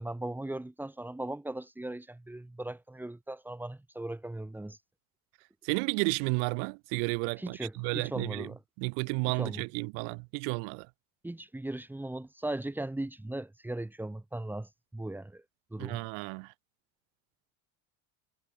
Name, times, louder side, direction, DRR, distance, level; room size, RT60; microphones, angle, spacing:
voice 1, 0.0-4.8 7.4-8.6 9.3-9.6 11.2-15.4 15.7-16.0, right 1 dB, 5° right, 7.1 m, -38 dB
voice 2, 5.6-8.5 8.8-10.9 15.8-16.5, right 40 dB or more, 65° right, 2.5 m, -32 dB
cardioid pair, 180°, 46 cm